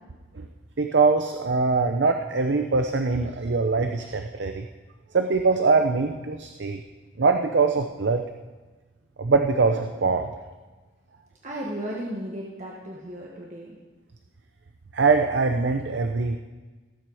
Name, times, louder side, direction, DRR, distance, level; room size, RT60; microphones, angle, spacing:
voice 1, 0.8-4.7 5.1-6.8 7.2-8.2 9.2-10.3 14.9-16.4, right 4 dB, 65° right, 6 dB, 0.6 m, -22 dB
voice 2, 11.4-13.7, right 1 dB, 40° right, -3 dB, 1.5 m, -34 dB
18.0 x 7.5 x 4.9 m, 1.3 s
head